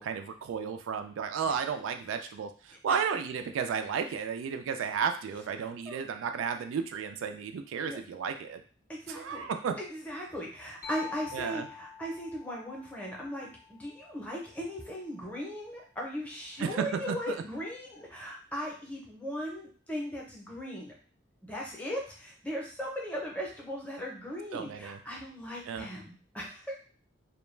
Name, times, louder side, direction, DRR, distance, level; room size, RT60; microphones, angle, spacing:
voice 1, 0.0-8.6 9.1-9.8 11.3-11.7 16.6-17.4 24.5-25.0 25.7-25.9, right 6 dB, 85° right, 8 dB, 0.3 m, -33 dB
voice 2, 8.9-9.4 9.8-20.9 21.4-26.8, equal, 5° left, -3 dB, 0.6 m, -38 dB
sound 1, 10.8-14.5, left 7 dB, 50° left, 0.4 m, -47 dB
2.2 x 2.1 x 3.1 m, 0.39 s
head